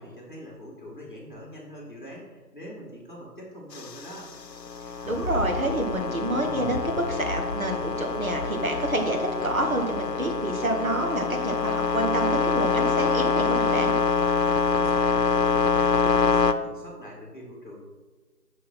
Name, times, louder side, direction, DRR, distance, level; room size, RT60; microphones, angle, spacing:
voice 1, 0.0-4.3 14.7-17.8, equal, 30° left, -3 dB, 2.1 m, -43 dB
sound 1, 3.7-16.5, left 5 dB, 85° left, 0.8 m, -25 dB
sound 2, 5.0-11.1, left 1 dB, 55° left, 1.1 m, -37 dB
voice 2, 5.0-13.9, right 1 dB, 55° right, 2 dB, 1.5 m, -28 dB
6.2 x 6.1 x 6.0 m, 1.3 s
figure-of-eight pair, 175°, 48 cm